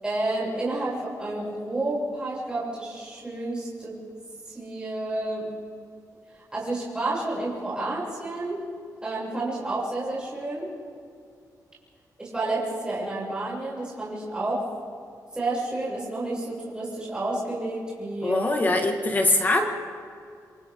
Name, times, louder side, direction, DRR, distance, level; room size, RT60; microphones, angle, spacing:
voice 1, 0.0-4.0 4.5-5.5 6.3-8.6 9.0-10.7 12.2-14.7 15.3-18.4, right 2 dB, 10° right, -7 dB, 7.2 m, -30 dB
voice 2, 18.2-19.7, left 2 dB, 25° left, 3 dB, 1.8 m, -22 dB
28.5 x 27.0 x 3.8 m, 2.4 s
wide cardioid pair, 155°, 7 cm